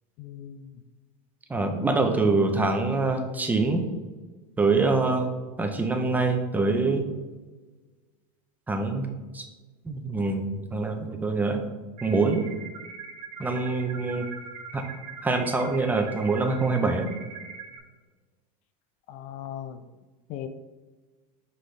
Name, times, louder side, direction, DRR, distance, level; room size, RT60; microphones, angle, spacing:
voice 1, 0.2-0.7 2.0-2.4 19.1-19.8 20.3-20.5, left 11 dB, 40° left, 9 dB, 0.4 m, -38 dB
voice 2, 1.5-3.8 4.6-5.3 5.6-7.1 8.7-9.1 9.3-9.5 9.8-11.6 12.0-12.4 13.4-14.3 14.7-14.8 15.2-17.1, right 3 dB, 10° right, 4 dB, 0.6 m, -25 dB
sound 1, 12.0-17.8, right 6 dB, 75° right, 1.1 m, -42 dB
6.0 x 5.3 x 3.2 m, 1.3 s
supercardioid pair, 145°, 19 cm